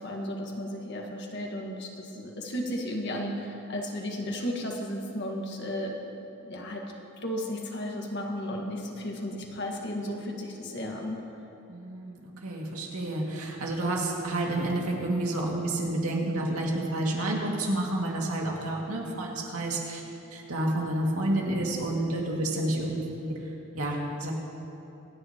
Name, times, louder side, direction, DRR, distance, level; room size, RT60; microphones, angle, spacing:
voice 1, 0.0-5.9 6.4-6.8 7.2-11.2, equal, 50° left, 0 dB, 1.7 m, -34 dB
voice 2, 11.7-20.0 20.3-23.4 23.7-24.3, right 1 dB, 85° right, -2 dB, 2.2 m, -29 dB
26.0 x 9.8 x 3.0 m, 3.0 s
head